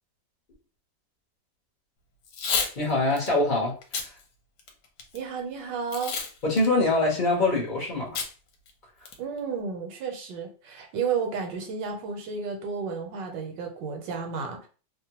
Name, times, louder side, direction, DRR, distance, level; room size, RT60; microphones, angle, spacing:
Packing tape duct tape / Tearing, 2.3-2.7 3.2-3.3 3.8-4.1 4.6-5.2 5.9-6.3 6.6-6.7 8.2-8.3 8.7-8.8 9.1-9.4, left 5 dB, 70° left, 1.2 m, -29 dB
voice 1, 2.8-3.7 6.4-8.2, left 2 dB, 40° left, -3 dB, 0.7 m, -24 dB
voice 2, 5.1-6.1 9.2-14.7, right 5 dB, 75° right, 3 dB, 1.4 m, -32 dB
2.9 x 2.2 x 2.8 m, 0.37 s
omnidirectional pair, 2.0 m